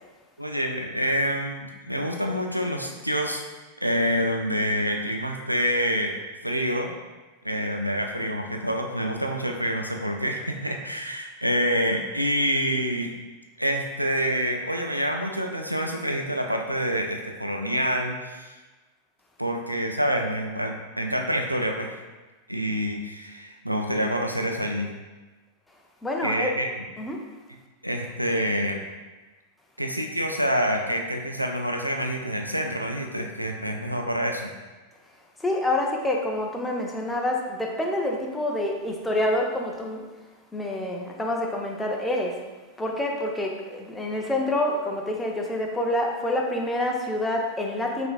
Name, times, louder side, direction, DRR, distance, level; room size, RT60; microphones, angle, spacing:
voice 1, 0.4-3.4 3.8-6.1 6.4-6.9 7.4-13.1 13.6-18.5 19.4-21.9 22.5-24.9 26.2-26.8 27.8-28.8 29.8-34.5, equal, 90° right, 2 dB, 0.4 m, -27 dB
voice 2, 26.0-26.5 27.0-27.2 35.4-40.0 40.5-42.3 42.8-48.1, left 1 dB, 5° left, 0 dB, 0.5 m, -27 dB
5.7 x 2.6 x 2.3 m, 1.2 s
figure-of-eight pair, 90°, 0 cm